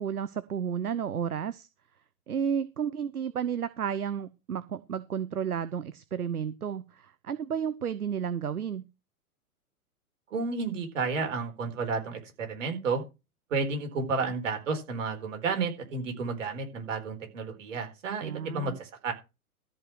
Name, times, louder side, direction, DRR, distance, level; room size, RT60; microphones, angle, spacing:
voice 1, 0.0-1.7 2.3-8.8 18.2-18.8, right 8 dB, 75° right, 15 dB, 1.0 m, -32 dB
voice 2, 10.3-13.0 13.5-19.1, right 4 dB, 55° right, 5 dB, 4.4 m, -31 dB
14.0 x 5.6 x 6.1 m, 0.27 s
figure-of-eight pair, 105°, 45 cm